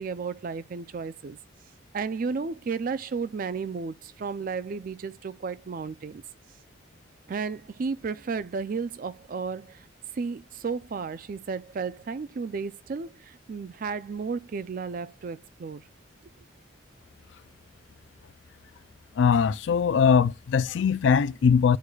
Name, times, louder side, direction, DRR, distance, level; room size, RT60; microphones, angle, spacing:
voice 1, 0.0-1.4 1.9-6.2 7.3-9.9 10.2-15.8, right 5 dB, 45° right, 0.4 m, -33 dB
voice 2, 19.2-21.8, left 6 dB, 60° left, 0.3 m, -21 dB
11.5 x 4.7 x 2.3 m
head